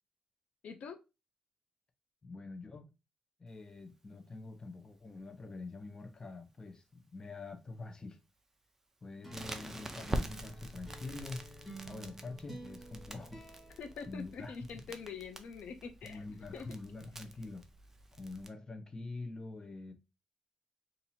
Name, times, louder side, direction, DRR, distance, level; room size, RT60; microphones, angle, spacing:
voice 1, 0.6-1.0 13.8-16.2 16.5-16.8, left 5 dB, 85° left, 0.5 m, -45 dB
voice 2, 2.2-2.9 3.4-8.2 9.0-11.5 11.9-13.4 14.1-14.6 16.0-17.7 18.2-19.9, left 3 dB, 30° left, 0.7 m, -45 dB
sound 1, 9.2-14.8, right 1 dB, ahead, 1.4 m, -51 dB
Crackle, 9.3-18.5, right 1 dB, 20° right, 0.5 m, -45 dB
2.8 x 2.6 x 4.1 m
cardioid pair, 105°, 2 cm